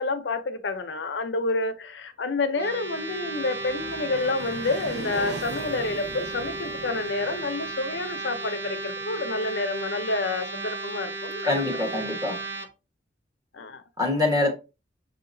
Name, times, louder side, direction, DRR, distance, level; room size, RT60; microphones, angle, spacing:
voice 1, 0.0-11.6 13.5-13.8, left 3 dB, 80° left, 0.6 m, -29 dB
sound 1, 2.5-12.7, right 3 dB, 90° right, 0.8 m, -35 dB
sound 2, 2.7-9.4, right 1 dB, 40° right, 1.5 m, -41 dB
voice 2, 11.4-12.4 14.0-14.5, left 2 dB, 20° right, 1.2 m, -24 dB
6.2 x 2.8 x 2.6 m
head